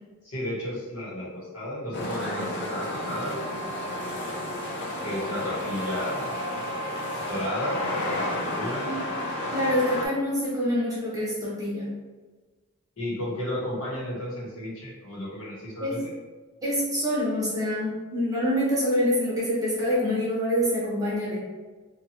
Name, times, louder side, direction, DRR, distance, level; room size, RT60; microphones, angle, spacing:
voice 1, 0.2-3.3 5.0-6.3 7.3-7.8 8.3-8.9 13.0-16.0, left 1 dB, 75° left, -5 dB, 1.0 m, -33 dB
sound 1, 1.9-10.1, left 1 dB, 50° left, 0.4 m, -31 dB
voice 2, 9.5-11.9 15.8-16.0 16.6-21.4, equal, 15° right, -7 dB, 0.8 m, -26 dB
2.8 x 2.2 x 2.9 m, 1.3 s
head